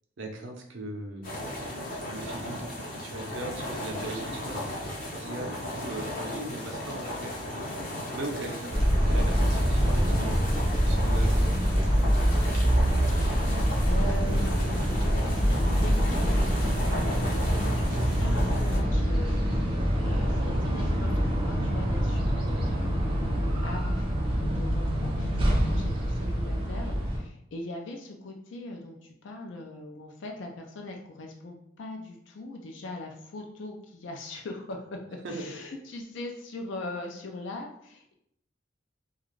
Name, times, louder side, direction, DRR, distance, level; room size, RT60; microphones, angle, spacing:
voice 1, 0.2-1.5 2.1-4.8 5.2-7.4 8.1-10.5 10.8-11.9 25.5-25.8 35.2-35.5, right 2 dB, 75° right, 2 dB, 0.6 m, -39 dB
sound 1, 1.2-18.8, left 1 dB, 50° left, 0.8 m, -36 dB
sound 2, 8.7-27.2, equal, 30° right, 0.5 m, -25 dB
voice 2, 13.1-13.5 13.8-35.0 35.3-38.1, left 2 dB, 70° left, 1 dB, 0.4 m, -41 dB
2.4 x 2.3 x 3.1 m, 0.73 s
head